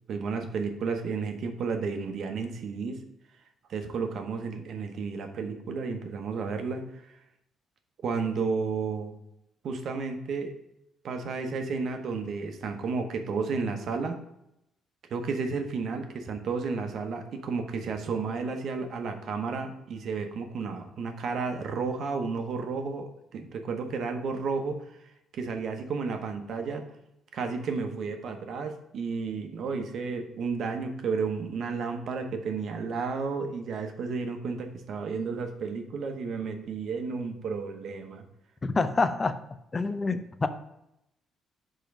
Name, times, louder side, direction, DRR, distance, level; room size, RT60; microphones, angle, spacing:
voice 1, 0.1-3.0 3.7-7.2 8.0-9.2 9.6-10.5 11.0-14.2 15.1-24.8 25.3-26.8 27.3-38.2, right 4 dB, 65° right, 5 dB, 0.9 m, -32 dB
voice 2, 38.6-39.4 39.7-40.5, left 3 dB, 30° left, 10 dB, 0.5 m, -27 dB
5.3 x 3.7 x 5.9 m, 0.82 s
cardioid pair, 90°, 0 cm